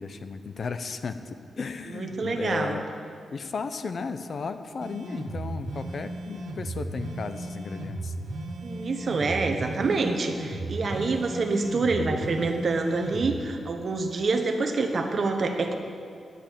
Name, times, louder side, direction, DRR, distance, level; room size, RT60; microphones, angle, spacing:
voice 1, 0.0-2.8 3.3-8.1, left 4 dB, 50° left, 10 dB, 0.7 m, -35 dB
voice 2, 1.9-2.8 8.6-15.8, right 3 dB, 45° right, 5 dB, 1.2 m, -27 dB
sound 1, 4.8-13.4, right 2 dB, 85° right, 1.7 m, -35 dB
10.0 x 8.9 x 8.8 m, 2.3 s
wide cardioid pair, 130°, 0 cm